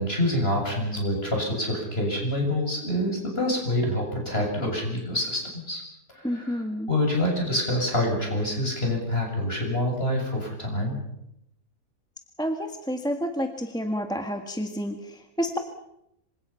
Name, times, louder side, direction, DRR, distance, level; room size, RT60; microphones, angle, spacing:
voice 1, 0.0-5.8 6.1-6.6 6.9-11.0, left 1 dB, 35° left, 1 dB, 8.0 m, -26 dB
voice 2, 6.2-6.9 12.4-15.6, equal, 5° left, 5 dB, 1.5 m, -29 dB
27.0 x 25.5 x 5.8 m, 0.81 s
omnidirectional pair, 1.7 m